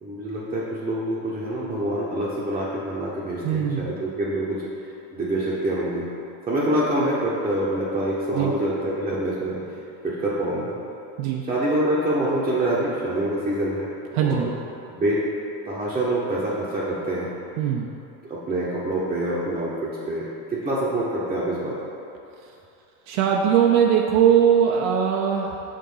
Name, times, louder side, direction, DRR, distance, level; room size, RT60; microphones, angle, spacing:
voice 1, 0.0-6.1 6.5-10.8 11.4-14.5 14.9-15.2 15.6-17.3 18.2-21.8, right 1 dB, 15° right, -7 dB, 0.8 m, -26 dB
voice 2, 3.4-3.9 8.3-8.5 11.2-11.4 14.1-14.6 17.6-17.9 23.1-25.6, right 8 dB, 75° right, 0 dB, 0.7 m, -20 dB
6.4 x 3.8 x 5.4 m, 2.8 s
supercardioid pair, 135°, 40 cm